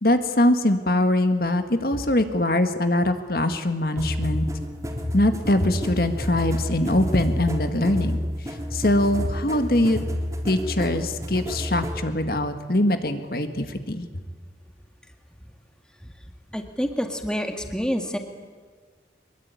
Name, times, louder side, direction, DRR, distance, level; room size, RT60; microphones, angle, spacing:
voice 1, 0.0-4.4 5.1-8.2 8.4-10.0 10.4-14.1, left 1 dB, 55° left, 8 dB, 1.8 m, -22 dB
sound 1, 4.0-12.0, left 1 dB, 20° right, 3.4 m, -30 dB
voice 2, 16.5-18.2, equal, 5° left, 5 dB, 1.8 m, -27 dB
24.0 x 22.0 x 9.7 m, 1.5 s
head